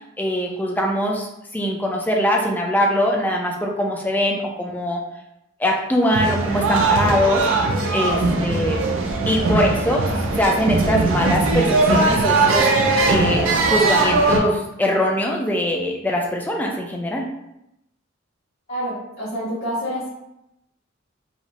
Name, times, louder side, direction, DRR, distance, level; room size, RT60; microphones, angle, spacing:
voice 1, 0.2-5.0 5.6-7.4 7.9-8.8 9.3-10.1 10.4-17.3, equal, 10° left, 0 dB, 0.3 m, -22 dB
sound 1, 6.1-14.4, right 3 dB, 80° right, 0.4 m, -19 dB
voice 2, 18.7-20.1, equal, 55° left, -10 dB, 1.1 m, -27 dB
2.6 x 2.0 x 2.8 m, 0.85 s
head